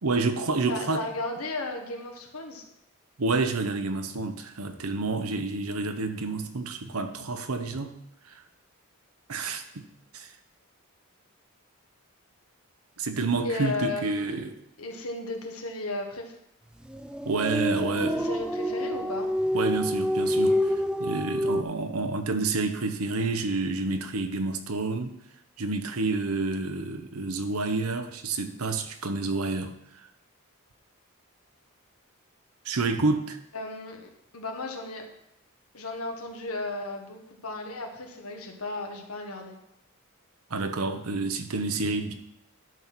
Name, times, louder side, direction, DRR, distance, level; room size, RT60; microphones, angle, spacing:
voice 1, 0.0-1.1 3.2-8.0 8.3-8.4 9.3-9.9 10.1-10.3 13.0-14.6 17.2-18.3 19.5-25.1 25.6-29.7 32.6-33.4 40.5-42.1, right 3 dB, 90° right, 8 dB, 0.9 m, -29 dB
voice 2, 0.7-2.6 13.4-14.5 14.8-16.4 17.8-19.3 33.5-35.1 35.7-39.5, left 2 dB, 85° left, 3 dB, 1.5 m, -35 dB
sound 1, 16.8-21.6, equal, 5° right, 0.4 m, -27 dB
11.0 x 4.2 x 6.1 m, 0.80 s
head